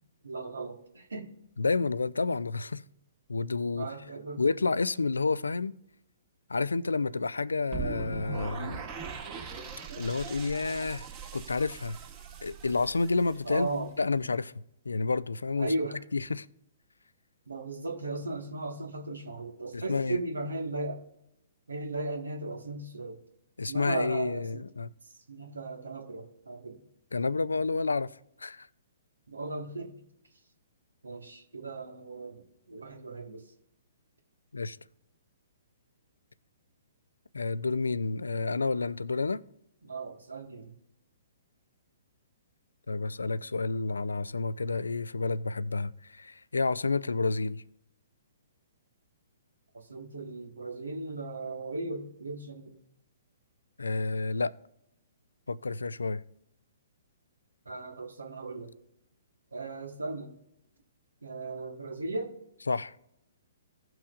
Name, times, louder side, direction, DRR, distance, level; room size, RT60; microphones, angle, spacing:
voice 1, 0.2-1.3 3.7-4.4 13.4-13.9 15.6-16.0 17.5-21.0 21.7-23.2 23.7-24.6 25.1-26.8 29.3-29.9 31.0-33.4 39.8-40.7 49.7-52.8 57.6-58.7 59.5-60.3 61.2-62.3, right 2 dB, 85° right, 1.6 m, -36 dB
voice 2, 1.6-2.8 3.3-3.9 4.4-5.7 6.5-8.8 10.0-11.1 11.3-12.0 12.4-13.7 14.0-15.7 16.1-16.5 19.7-20.2 23.6-24.9 27.1-28.1 28.4-28.7 34.5-34.8 37.3-39.4 42.9-47.6 53.8-54.5 55.5-56.2 62.7-62.9, left 3 dB, 85° left, 0.4 m, -30 dB
sound 1, 7.7-13.8, right 6 dB, 35° right, 2.0 m, -40 dB
16.0 x 6.0 x 2.5 m
figure-of-eight pair, 125°, 0 cm